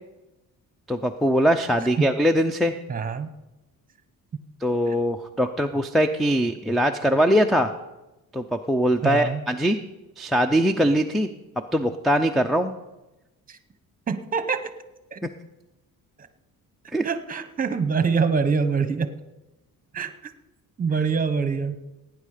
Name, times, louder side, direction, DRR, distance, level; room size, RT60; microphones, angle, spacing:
voice 1, 0.9-2.8 4.6-7.7 8.3-9.8 10.2-11.3 11.7-12.7 15.2-15.3 16.9-17.1, equal, ahead, 8 dB, 0.4 m, -22 dB
voice 2, 2.9-3.3 4.9-5.0 9.0-9.4 13.5-13.6 14.1-14.7 15.1-15.2 17.0-19.1 19.9-20.3 20.8-21.8, right 5 dB, 25° right, 11 dB, 0.9 m, -25 dB
17.5 x 9.1 x 5.0 m, 1.0 s
cardioid pair, 130°, 35 cm